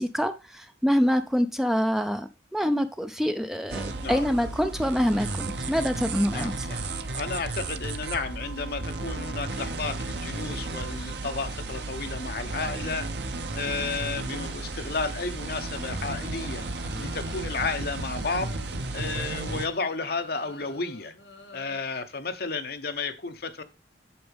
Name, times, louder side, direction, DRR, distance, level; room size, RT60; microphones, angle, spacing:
voice 1, 0.0-6.7, equal, ahead, 0.5 m, -26 dB
sound 1, 3.7-19.7, right 2 dB, 70° right, 0.9 m, -34 dB
voice 2, 6.3-16.6 17.0-18.5 18.9-21.1 21.5-23.6, left 4 dB, 55° left, 1.0 m, -32 dB
sound 2, 14.2-21.8, left 3 dB, 80° left, 3.5 m, -50 dB
8.7 x 7.0 x 3.5 m
head